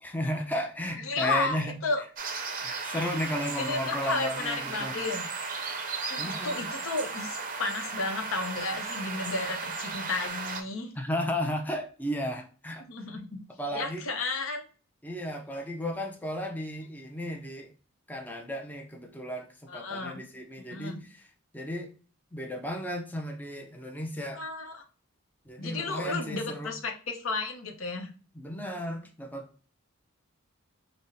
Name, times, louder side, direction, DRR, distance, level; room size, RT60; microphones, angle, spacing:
voice 1, 0.0-1.8 2.6-5.0 6.2-6.6 11.0-12.8 13.6-14.0 15.0-17.7 18.1-21.2 21.5-21.9 22.3-24.4 25.5-26.7 28.3-29.7, equal, 10° left, 0.4 m, -34 dB
voice 2, 1.0-2.0 3.6-5.2 6.1-10.9 12.9-13.4 13.7-14.6 19.7-20.2 20.7-21.0 24.3-24.8 25.6-28.1, left 3 dB, 80° left, 0.7 m, -33 dB
sound 1, 2.2-10.6, right 4 dB, 40° right, 0.5 m, -35 dB
5.4 x 2.0 x 2.6 m
head